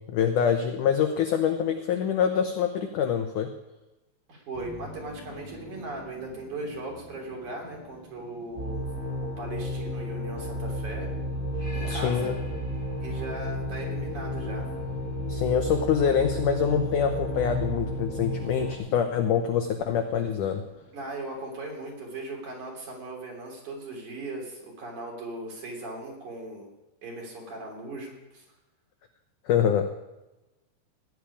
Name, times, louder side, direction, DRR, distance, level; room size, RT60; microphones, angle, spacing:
voice 1, 0.1-3.5 11.8-12.3 15.3-20.6 29.5-29.9, left 7 dB, 85° left, 5 dB, 1.8 m, -25 dB
voice 2, 4.3-8.9 9.2-11.1 11.7-12.3 13.0-14.7 20.9-26.7 27.0-28.4, right 2 dB, 50° right, -1 dB, 4.5 m, -38 dB
sound 1, 4.5-21.7, left 1 dB, 20° left, 1.6 m, -47 dB
sound 2, 8.6-18.8, equal, 20° right, 2.7 m, -32 dB
17.0 x 6.2 x 10.0 m, 0.99 s
omnidirectional pair, 4.8 m